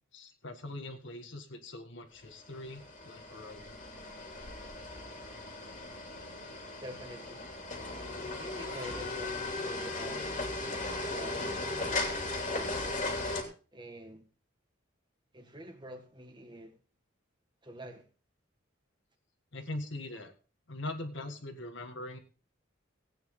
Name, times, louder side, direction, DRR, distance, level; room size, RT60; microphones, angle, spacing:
voice 1, 0.1-3.8 19.5-20.3 20.7-22.2, left 1 dB, 60° left, 1.7 m, -42 dB
sound 1, 2.3-13.4, left 2 dB, 40° left, 2.7 m, -37 dB
voice 2, 6.8-7.5 8.2-10.5 11.1-13.2 13.7-14.3 15.3-16.8 17.6-18.1, right 1 dB, 20° right, 1.6 m, -47 dB
16.5 x 9.0 x 3.7 m
head